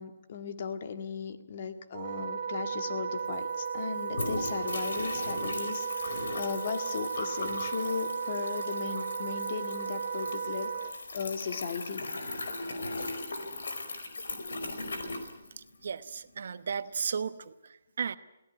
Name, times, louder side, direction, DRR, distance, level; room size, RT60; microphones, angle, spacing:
voice 1, 0.0-10.7 11.1-12.1, left 6 dB, 45° left, 8 dB, 1.9 m, -37 dB
Wind instrument woodwind instrument, 1.9-10.9, right 6 dB, 35° right, 1.1 m, -35 dB
sound 1, 2.9-3.0 3.2-16.0, left 2 dB, 85° left, 4.8 m, -38 dB
voice 2, 15.8-17.5 18.0-18.2, right 6 dB, 60° right, 13 dB, 1.1 m, -34 dB
23.0 x 17.0 x 9.5 m, 0.95 s
hypercardioid pair, 165°, 0 cm